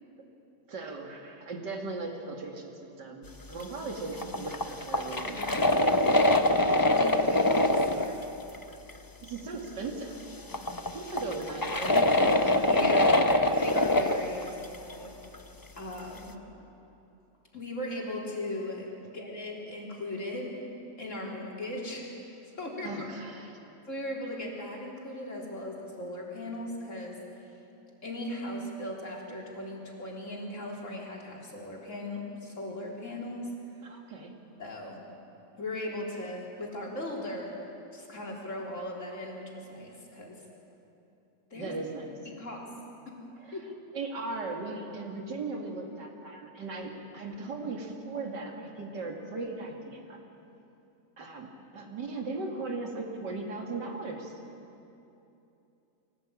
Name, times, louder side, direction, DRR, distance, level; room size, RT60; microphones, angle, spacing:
voice 1, 0.7-5.8 6.9-7.1 9.2-10.1 10.9-12.5 22.8-23.6 33.8-34.3 41.5-42.1 43.4-50.2 51.2-54.3, right 3 dB, 75° right, 1 dB, 3.0 m, -38 dB
sound 1, 4.2-8.1 8.5-8.6 8.9-9.0 10.5-14.9 15.3-15.4, left 1 dB, 25° left, 0.4 m, -24 dB
voice 2, 5.2-5.7 6.9-8.2 12.6-13.2 13.6-15.2 15.8-16.4 17.5-20.5 21.0-22.1 22.4-22.9 23.9-27.2 28.0-33.5 34.6-35.0 35.5-37.5 37.9-40.4 41.5-41.7 42.3-42.7 43.1-43.2 43.5-43.6, left 1 dB, 45° left, -2 dB, 4.0 m, -38 dB
23.5 x 17.5 x 8.7 m, 2.9 s
omnidirectional pair, 1.9 m